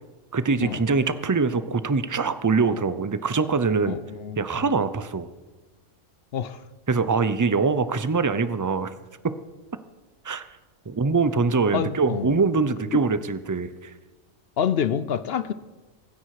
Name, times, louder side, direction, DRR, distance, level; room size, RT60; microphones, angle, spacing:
voice 1, 0.3-4.0 4.4-5.3 6.9-8.9 9.2-9.3 10.2-10.4 10.9-13.9, right 4 dB, 25° right, 0.4 m, -23 dB
voice 2, 3.9-4.4 6.3-6.6 11.7-12.4 14.6-15.5, left 8 dB, 60° left, 0.8 m, -27 dB
24.0 x 10.0 x 4.9 m
omnidirectional pair, 1.3 m